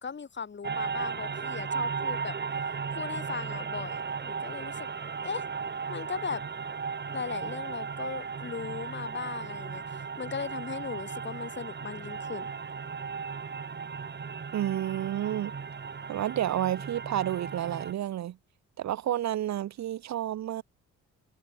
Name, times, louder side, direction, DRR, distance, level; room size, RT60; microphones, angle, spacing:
voice 1, 0.0-2.3 2.9-4.9 5.2-5.5 5.9-6.4 7.1-12.5, left 5 dB, 35° left, 4.5 m, -38 dB
sound 1, 0.6-17.9, right 5 dB, 35° right, 3.6 m, -36 dB
voice 2, 14.5-15.5 16.1-18.4 18.8-20.6, right 12 dB, 65° right, 1.0 m, -30 dB
cardioid pair, 90°, 30 cm